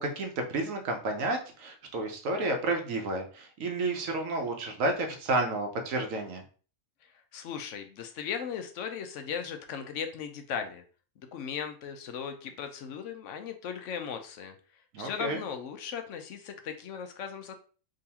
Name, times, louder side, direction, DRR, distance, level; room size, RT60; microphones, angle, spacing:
voice 1, 0.0-6.4 14.9-15.4, right 2 dB, 85° right, 3 dB, 1.2 m, -31 dB
voice 2, 7.3-10.8 11.3-14.5 15.0-17.5, left 7 dB, 75° left, 7 dB, 0.9 m, -37 dB
3.6 x 3.0 x 2.8 m, 0.39 s
omnidirectional pair, 1.3 m